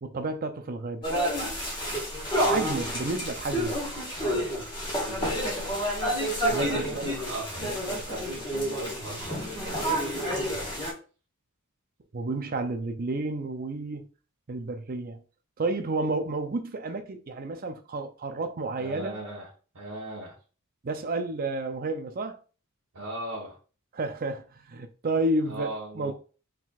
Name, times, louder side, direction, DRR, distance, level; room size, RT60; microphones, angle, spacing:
voice 1, 0.0-1.1 2.4-3.8 6.5-7.1 12.1-14.1 14.5-15.2 15.6-19.2 20.8-22.4 23.9-25.7 25.9-26.1, right 2 dB, 40° right, 0.6 m, -31 dB
sound 1, 1.0-10.9, equal, 20° left, 1.7 m, -29 dB
voice 2, 5.0-5.8 6.6-10.3 18.8-20.4 22.9-23.6 25.4-26.1, right 1 dB, 85° right, 1.6 m, -38 dB
4.4 x 3.8 x 2.4 m
head